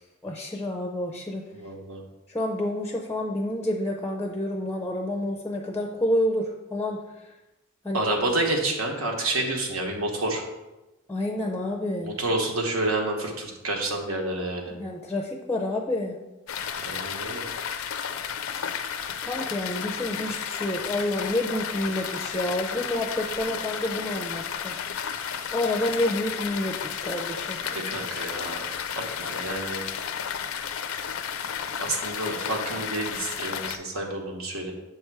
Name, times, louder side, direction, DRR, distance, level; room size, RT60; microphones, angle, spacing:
voice 1, 0.0-1.4 2.3-7.0 7.8-8.0 11.1-12.1 14.7-16.2 19.2-24.7 25.5-27.6, left 1 dB, 10° left, 1 dB, 0.4 m, -29 dB
voice 2, 1.5-2.0 7.9-10.4 12.0-14.8 16.8-17.4 27.7-29.8 31.8-34.7, right 2 dB, 85° right, 1 dB, 1.1 m, -29 dB
sound 1, 16.5-33.8, left 7 dB, 80° left, 0.4 m, -33 dB
7.0 x 3.3 x 4.6 m, 1.0 s
head